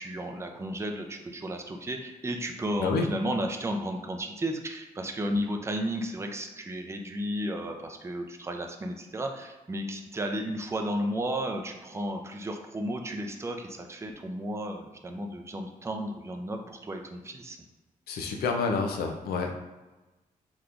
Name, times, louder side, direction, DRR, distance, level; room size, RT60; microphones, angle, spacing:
voice 1, 0.0-17.6, equal, 15° right, 3 dB, 0.5 m, -33 dB
voice 2, 18.1-19.5, left 4 dB, 90° left, 3 dB, 0.5 m, -28 dB
3.4 x 2.9 x 2.4 m, 1.1 s
cardioid pair, 70°, 15 cm